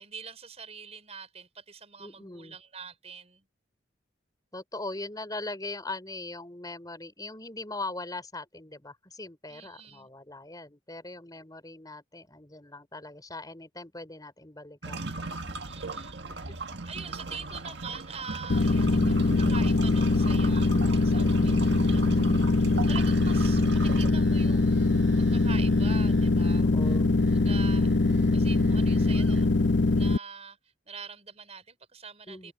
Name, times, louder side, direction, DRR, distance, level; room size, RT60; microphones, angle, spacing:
voice 1, 0.0-3.5 9.5-10.1 15.7-20.7 21.0-24.9 25.3-26.7 27.2-27.9 28.3-29.5 29.9-30.6 30.9-32.5, right 6 dB, 35° right, 4.7 m, -44 dB
voice 2, 2.0-2.6 4.5-15.1 16.5-16.6 17.2-17.5 26.6-27.1 32.3-32.5, left 2 dB, 20° left, 5.5 m, -40 dB
sound 1, 14.8-24.1, right 3 dB, 65° right, 1.9 m, -37 dB
sound 2, 18.5-30.2, left 2 dB, 70° left, 0.8 m, -23 dB
sound 3, 22.9-29.5, right 1 dB, 80° right, 7.3 m, -46 dB
head